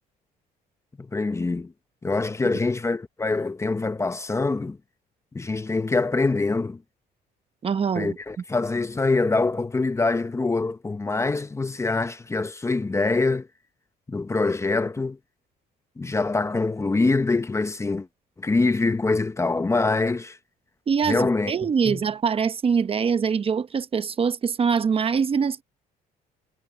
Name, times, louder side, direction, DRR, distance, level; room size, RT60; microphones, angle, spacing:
voice 1, 1.0-1.7 2.0-4.8 5.3-6.8 7.9-13.5 14.1-15.2 16.0-18.1 18.4-20.4 21.1-21.5 21.8-22.0, left 3 dB, 15° left, 0.9 m, -24 dB
voice 2, 7.6-8.2 20.9-25.6, right 6 dB, 35° right, 0.9 m, -23 dB
cardioid pair, 110°, 17 cm